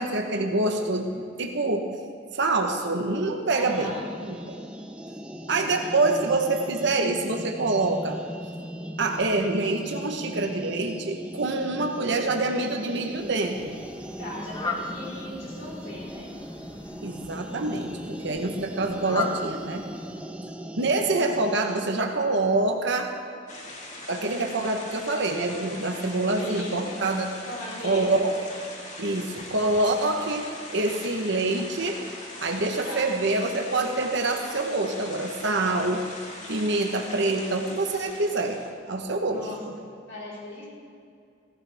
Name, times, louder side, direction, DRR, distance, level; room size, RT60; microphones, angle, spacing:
voice 1, 0.0-1.9 2.3-3.9 4.2-4.6 5.5-8.2 9.0-13.8 17.0-19.9 20.8-23.1 24.1-27.3 27.8-28.5 29.0-32.0 32.4-36.0 36.5-38.6 38.9-39.7, right 2 dB, 65° right, 3 dB, 1.1 m, -26 dB
voice 2, 3.5-4.0 14.2-16.3 26.4-26.7 27.4-28.2 32.8-33.1 39.3-39.6 40.1-40.7, left 1 dB, 80° left, -6 dB, 4.2 m, -38 dB
sound 1, 3.6-21.9, equal, 5° right, 0.7 m, -39 dB
Fowl, 13.1-20.4, left 2 dB, 20° left, 1.1 m, -38 dB
sound 2, 23.5-38.7, left 2 dB, 40° left, 2.0 m, -41 dB
17.5 x 15.5 x 3.5 m, 2.4 s
head